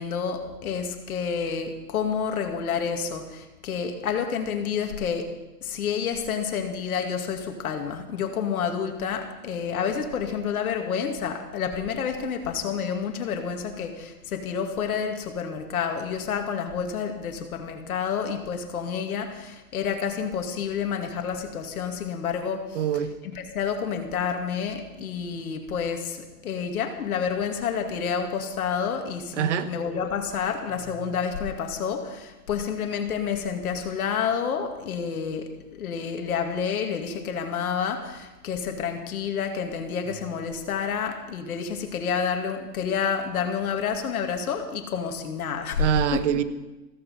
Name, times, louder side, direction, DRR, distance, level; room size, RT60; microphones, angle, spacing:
voice 1, 0.0-5.3 5.6-22.8 23.3-35.5 35.8-45.8 46.1-46.2, left 7 dB, 70° left, 5 dB, 2.5 m, -29 dB
voice 2, 22.7-23.1 29.3-29.7 45.8-46.4, right 9 dB, 50° right, 13 dB, 1.0 m, -24 dB
15.0 x 14.5 x 5.5 m, 1.1 s
hypercardioid pair, 135°, 46 cm